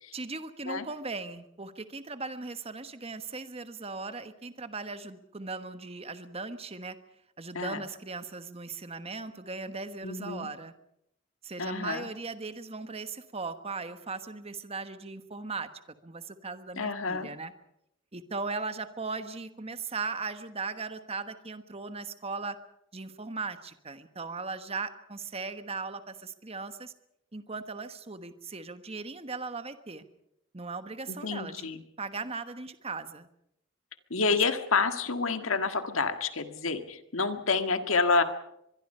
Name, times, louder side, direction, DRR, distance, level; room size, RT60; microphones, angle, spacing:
voice 1, 0.1-7.0 7.4-10.7 11.4-15.7 16.0-17.5 18.1-22.6 22.9-26.9 27.3-30.1 30.5-31.7 32.0-33.3 34.3-34.4, right 4 dB, 30° right, 10 dB, 1.2 m, -38 dB
voice 2, 10.0-10.5 11.6-12.1 16.8-17.3 31.1-31.8 34.1-38.2, left 4 dB, 80° left, 8 dB, 1.7 m, -28 dB
24.5 x 22.0 x 5.5 m, 0.80 s
head